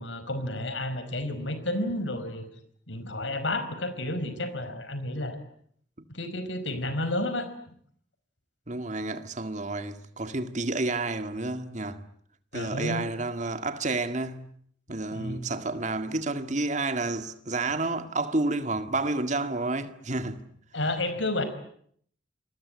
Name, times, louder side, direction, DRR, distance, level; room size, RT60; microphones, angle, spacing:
voice 1, 0.0-2.4 2.9-5.4 6.1-7.5 12.5-13.0 15.1-15.4 20.7-21.4, left 1 dB, 80° left, 4.8 m, -31 dB
voice 2, 8.7-12.0 12.5-14.5 14.9-20.4, right 2 dB, 40° right, 1.9 m, -30 dB
29.0 x 21.5 x 9.7 m
head